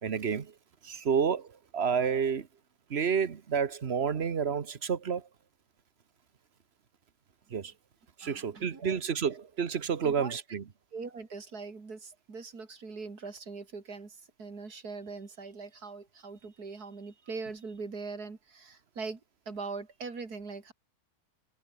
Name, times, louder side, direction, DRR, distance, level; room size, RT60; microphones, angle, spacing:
voice 1, 0.0-0.5 0.8-2.5 2.9-5.3 7.5-7.7 8.2-10.6, right 6 dB, 45° right, 1.3 m, -30 dB
voice 2, 8.2-9.0 10.0-10.4 10.9-20.7, right 4 dB, 80° right, 3.7 m, -41 dB
omnidirectional pair, 1.6 m